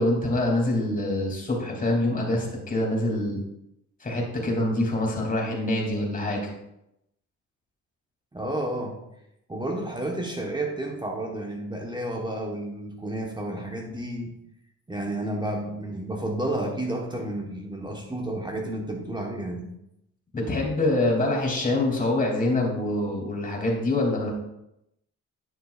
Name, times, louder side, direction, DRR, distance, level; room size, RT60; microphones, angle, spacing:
voice 1, 0.0-3.4 4.0-6.5 20.3-24.3, left 1 dB, 30° left, 0 dB, 2.8 m, -25 dB
voice 2, 8.3-9.0 9.5-14.3 14.9-19.7, right 1 dB, 15° right, 1 dB, 1.1 m, -31 dB
9.9 x 7.0 x 2.4 m, 0.83 s
cardioid pair, 90°, 30 cm